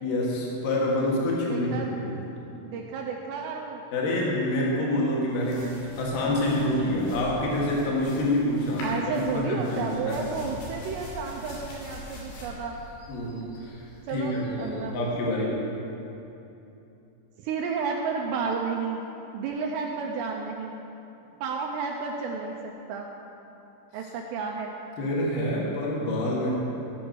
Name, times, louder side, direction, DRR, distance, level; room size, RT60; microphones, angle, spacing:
voice 1, 0.0-2.1 3.9-10.3 13.1-13.5 14.1-15.6 25.0-26.5, left 1 dB, 55° left, -4 dB, 3.0 m, -27 dB
voice 2, 1.5-2.0 2.5-3.8 6.3-6.4 8.8-12.8 14.1-15.1 17.4-19.0 19.3-20.8 21.4-23.1 23.9-24.7, right 5 dB, 80° right, 1 dB, 2.6 m, -32 dB
sound 1, 5.3-15.3, left 1 dB, 85° left, 5.1 m, -44 dB
16.0 x 6.2 x 6.2 m, 2.9 s
omnidirectional pair, 5.4 m